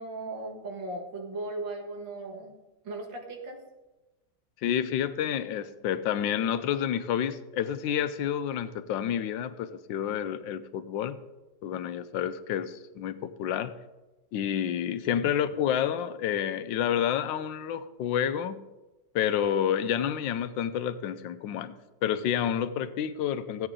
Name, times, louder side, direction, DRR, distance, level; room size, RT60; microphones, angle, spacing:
voice 1, 0.0-2.5 2.8-3.6 15.2-15.3, right 2 dB, 75° right, 2 dB, 2.4 m, -37 dB
voice 2, 4.6-11.2 11.6-13.7 14.3-18.6 19.1-21.7 22.0-23.7, left 9 dB, 85° left, 12 dB, 1.3 m, -29 dB
15.0 x 8.8 x 3.7 m, 1.1 s
omnidirectional pair, 2.0 m